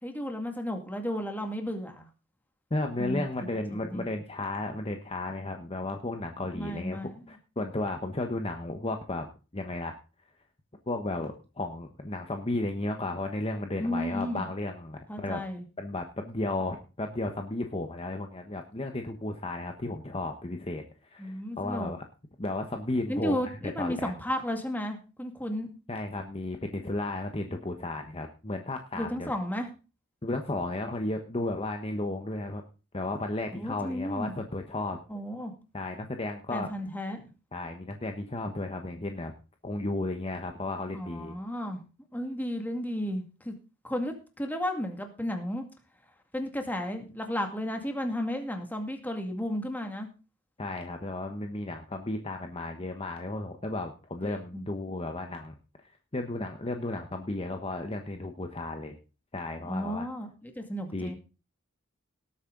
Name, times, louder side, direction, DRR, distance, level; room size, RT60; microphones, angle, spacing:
voice 1, 0.0-2.1 3.0-4.2 6.5-7.1 13.8-14.5 15.1-15.6 21.2-21.9 23.1-25.7 28.9-29.7 33.5-34.3 35.1-35.5 36.5-37.2 40.9-41.8 42.1-43.5 43.8-45.7 46.3-50.1 54.2-54.7 59.6-61.1, equal, 10° left, 4 dB, 2.2 m, -33 dB
voice 2, 2.7-7.0 7.3-9.3 9.5-10.0 10.9-15.4 15.8-22.0 22.4-24.1 25.9-29.3 30.2-32.6 32.9-35.0 35.7-36.7 37.5-39.3 39.6-41.4 50.6-58.9 59.3-60.1 60.9-61.1, left 2 dB, 30° left, 5 dB, 1.2 m, -34 dB
18.5 x 8.5 x 3.9 m, 0.33 s
head